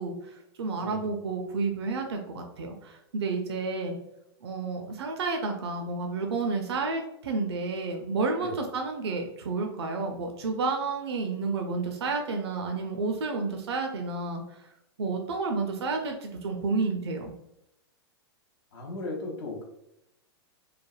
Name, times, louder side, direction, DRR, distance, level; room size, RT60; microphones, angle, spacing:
voice 1, 0.0-4.0 4.4-14.7 15.0-17.3, right 4 dB, 75° right, 3 dB, 0.4 m, -31 dB
voice 2, 0.8-1.1 8.4-8.6 18.7-19.6, left 2 dB, 65° left, 0 dB, 0.7 m, -36 dB
3.2 x 2.0 x 2.3 m, 0.83 s
hypercardioid pair, 105°, 14 cm